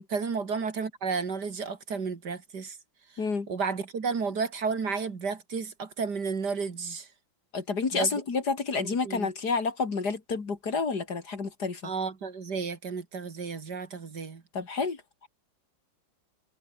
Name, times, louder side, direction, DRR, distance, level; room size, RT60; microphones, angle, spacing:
voice 1, 0.1-2.8 3.5-7.1 7.9-8.2 8.8-9.3 11.8-14.4, right 5 dB, 55° right, 2.8 m, -32 dB
voice 2, 3.2-3.5 7.5-11.8 14.5-15.3, left 4 dB, 55° left, 3.1 m, -29 dB
omnidirectional pair, 2.1 m